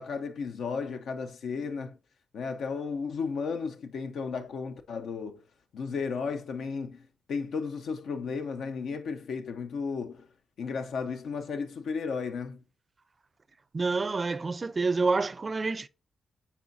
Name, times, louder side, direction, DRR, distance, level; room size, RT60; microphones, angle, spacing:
voice 1, 0.0-2.0 2.3-5.4 5.7-7.0 7.3-10.3 10.6-12.6, left 5 dB, 75° left, 0.6 m, -34 dB
voice 2, 13.7-15.9, right 3 dB, 35° right, 0.4 m, -28 dB
8.4 x 4.3 x 2.6 m
cardioid pair, 80°, 0 cm